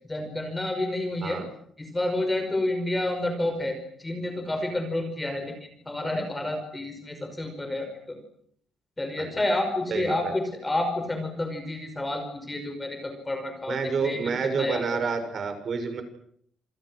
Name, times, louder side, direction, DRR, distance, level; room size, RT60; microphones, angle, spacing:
voice 1, 0.1-1.4 1.8-8.2 9.0-13.8 14.0-14.3 14.6-14.8, left 1 dB, 10° left, 6 dB, 5.4 m, -29 dB
voice 2, 9.9-10.3 13.7-16.0, right 5 dB, 40° right, 9 dB, 6.6 m, -29 dB
28.5 x 28.0 x 6.4 m, 0.66 s
cardioid pair, 160°, 0 cm